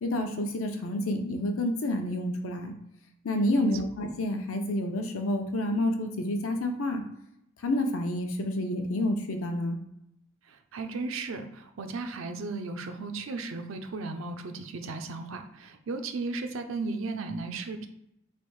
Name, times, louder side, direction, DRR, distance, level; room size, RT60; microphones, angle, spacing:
voice 1, 0.0-2.7 3.2-7.0 7.6-9.8, left 1 dB, 75° left, 4 dB, 0.6 m, -29 dB
voice 2, 10.5-17.9, right 3 dB, 65° right, 6 dB, 0.5 m, -35 dB
3.4 x 2.6 x 4.6 m, 0.78 s
head